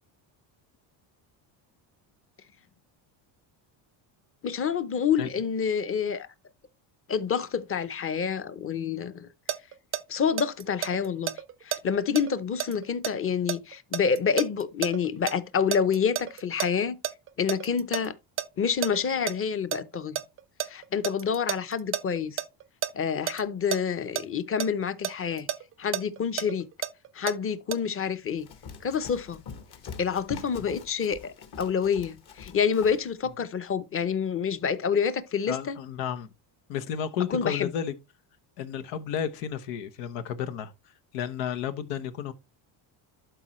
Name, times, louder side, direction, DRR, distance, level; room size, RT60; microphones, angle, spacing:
voice 1, 4.4-6.3 7.1-9.3 10.1-11.3 11.6-17.0 17.4-18.1 18.6-20.2 20.7-22.4 22.9-25.5 25.8-26.6 27.1-28.5 28.8-29.4 30.0-35.8 37.3-37.7, left 7 dB, 25° left, 0.7 m, -28 dB
sound 1, 9.5-15.3 15.7-18.1 18.4-18.5 18.8-19.3 19.7-22.9 23.3-23.4 23.7-23.8 24.2-24.3 24.6-27.3 27.7-27.8, right 10 dB, 30° right, 0.4 m, -31 dB
Run, 28.4-33.1, left 6 dB, 50° left, 1.6 m, -44 dB
voice 2, 35.5-36.3 36.7-37.9 38.6-40.7 41.1-42.3, left 8 dB, 90° left, 1.1 m, -32 dB
12.0 x 4.6 x 3.1 m
cardioid pair, 115°, 50 cm